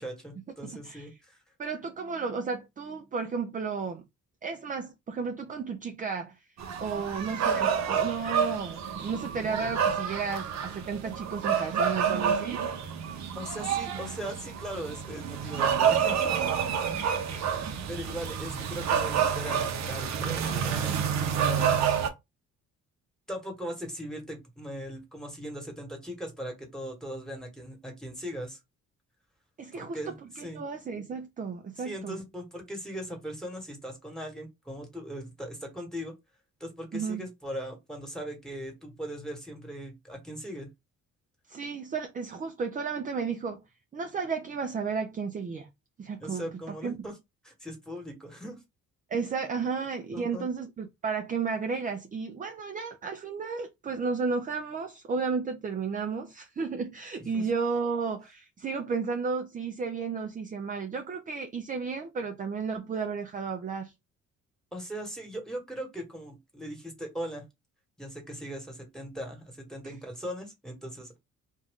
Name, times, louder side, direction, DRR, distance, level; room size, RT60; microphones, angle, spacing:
voice 1, 0.0-1.4 13.4-16.6 17.9-21.0 21.4-22.1 23.3-28.6 29.7-30.6 31.8-36.1 36.6-40.7 46.2-47.1 47.4-48.6 50.1-50.5 57.3-57.4 64.7-67.4 68.0-71.2, equal, ahead, 1.3 m, -39 dB
voice 2, 0.6-1.1 1.6-4.0 4.4-6.4 6.8-12.6 16.9-17.2 17.6-17.7 20.9-21.0 29.6-32.2 36.9-37.3 41.5-43.6 43.9-45.7 46.0-46.5 46.8-46.9 49.1-63.9 69.8-70.0, right 5 dB, 30° right, 0.4 m, -33 dB
sound 1, 6.6-22.1, right 7 dB, 65° right, 0.7 m, -28 dB
2.6 x 2.3 x 3.5 m
cardioid pair, 90°, 30 cm